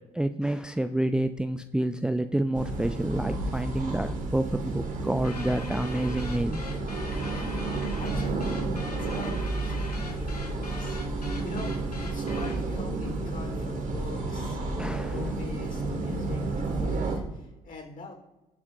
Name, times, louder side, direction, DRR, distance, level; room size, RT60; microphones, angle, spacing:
voice 1, 0.1-6.6 14.8-15.2, right 1 dB, 5° right, 9 dB, 0.6 m, -28 dB
sound 1, 2.5-17.2, right 2 dB, 40° right, 2.3 m, -31 dB
sound 2, 5.2-12.7, left 3 dB, 90° left, 0.9 m, -41 dB
voice 2, 7.9-18.1, left 3 dB, 45° left, 2 dB, 3.6 m, -44 dB
19.5 x 7.1 x 2.5 m, 1.1 s
figure-of-eight pair, 50°, 19 cm